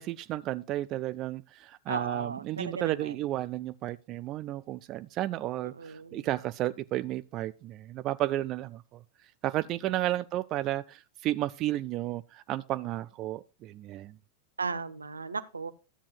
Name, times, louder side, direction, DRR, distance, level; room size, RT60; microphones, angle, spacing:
voice 1, 0.0-9.0 9.4-14.1, right 15 dB, 35° right, 0.3 m, -33 dB
voice 2, 1.9-3.2 5.6-6.3 14.6-15.7, right 4 dB, 75° right, 0.6 m, -36 dB
13.0 x 8.4 x 2.2 m
figure-of-eight pair, 90°, 0 cm